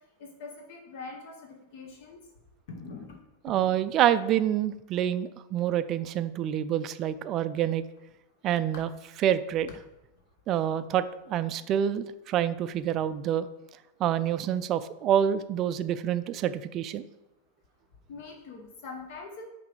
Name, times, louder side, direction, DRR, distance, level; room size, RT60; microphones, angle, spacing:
voice 1, 0.2-2.2 2.7-3.2 3.5-3.8 8.7-8.8 18.1-19.5, left 4 dB, 50° left, 2 dB, 0.9 m, -43 dB
voice 2, 3.4-7.9 8.4-8.9 9.2-9.7 10.5-13.5 14.0-17.0, right 10 dB, 35° right, 14 dB, 0.3 m, -27 dB
5.7 x 3.8 x 4.9 m, 0.95 s
figure-of-eight pair, 90°, 0 cm